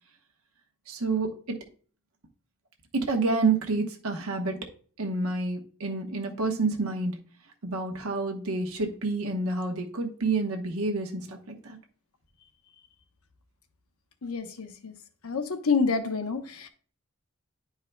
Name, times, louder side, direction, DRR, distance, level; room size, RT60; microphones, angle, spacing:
voice 1, 0.9-1.6 2.9-4.7 5.0-7.1 7.6-11.8, right 3 dB, 90° right, 1.1 m, -29 dB
voice 2, 14.2-14.9 15.2-16.7, left 5 dB, 90° left, 0.8 m, -28 dB
10.5 x 4.7 x 2.2 m
head